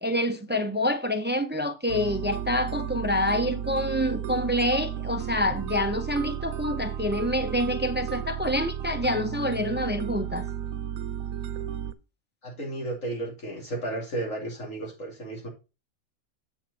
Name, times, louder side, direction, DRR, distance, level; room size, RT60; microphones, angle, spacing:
voice 1, 0.0-10.5, left 1 dB, 15° right, 0.4 m, -27 dB
sound 1, 1.9-11.9, right 9 dB, 85° right, 1.1 m, -33 dB
voice 2, 12.4-15.5, right 2 dB, 70° left, 3.2 m, -33 dB
7.9 x 6.2 x 4.1 m
omnidirectional pair, 1.4 m